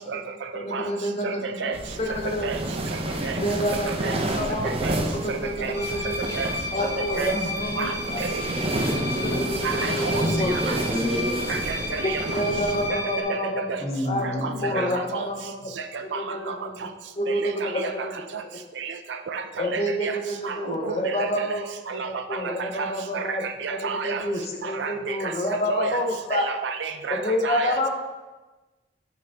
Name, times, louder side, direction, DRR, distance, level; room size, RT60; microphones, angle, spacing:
voice 1, 0.5-1.7 2.0-2.5 3.4-4.7 5.1-6.3 6.7-8.4 9.2-10.6 12.0-15.7 16.0-16.9 17.2-18.2 19.6-23.4 23.7-26.5 27.1-27.9, left 1 dB, 35° left, 2 dB, 0.7 m, -28 dB
sound 1, 1.7-12.9, right 1 dB, 30° right, 0.6 m, -30 dB
voice 2, 5.3-5.7 6.4-6.5 7.1-7.3 7.8-7.9 8.2-8.4 9.6-10.2 10.7-10.8 11.5-12.2 12.9-13.0 13.3-13.4 14.4-14.9 15.1-15.2 16.1-16.2 16.5-16.6 17.6-17.9 18.8-18.9 19.3-19.4 19.7-20.2 20.4-21.3 21.9-22.1 22.4-22.5 22.8-24.2 24.7-25.3 25.7-26.0 26.3-27.2 27.4-27.8, right 5 dB, 75° right, 8 dB, 0.5 m, -30 dB
sound 2, 5.7-13.2, left 1 dB, 15° right, 1.8 m, -33 dB
voice 3, 8.7-9.5 10.0-11.3 13.8-14.8, equal, ahead, -6 dB, 1.7 m, -30 dB
8.7 x 5.0 x 3.4 m, 1.2 s
head